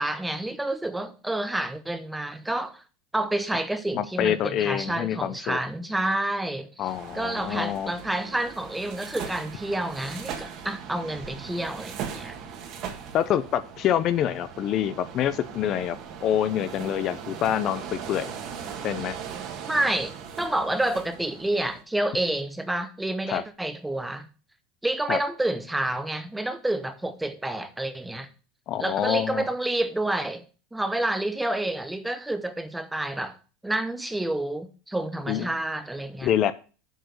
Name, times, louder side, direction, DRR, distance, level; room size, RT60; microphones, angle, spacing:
voice 1, 0.0-2.8 3.1-6.9 7.1-12.4 19.7-20.1 20.4-24.3 24.8-28.3 28.8-30.4 30.7-33.4 33.6-36.3, right 1 dB, 5° right, 0.7 m, -29 dB
voice 2, 3.9-5.6 6.8-7.9 13.1-18.3 18.8-19.2 23.3-23.4 25.1-25.2 28.7-29.5 35.3-35.5 36.2-36.6, left 10 dB, 40° left, 0.6 m, -26 dB
sound 1, 6.8-21.8, right 7 dB, 45° right, 1.7 m, -39 dB
7.9 x 4.9 x 6.3 m
supercardioid pair, 150°, 0 cm